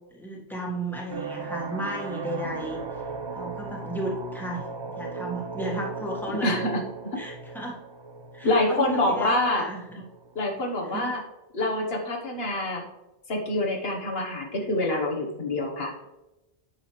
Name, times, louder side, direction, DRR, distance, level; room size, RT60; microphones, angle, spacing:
voice 1, 0.1-2.8 3.3-6.6 7.2-7.8 8.3-10.0 10.8-11.2, right 1 dB, ahead, -2 dB, 1.6 m, -34 dB
sound 1, 1.1-10.6, right 4 dB, 35° right, 0.4 m, -37 dB
voice 2, 6.4-7.2 8.4-9.7 10.0-10.1 10.3-11.2 11.5-12.8 13.3-15.9, left 1 dB, 70° left, 0 dB, 1.5 m, -26 dB
9.5 x 6.2 x 3.2 m, 0.99 s
omnidirectional pair, 1.1 m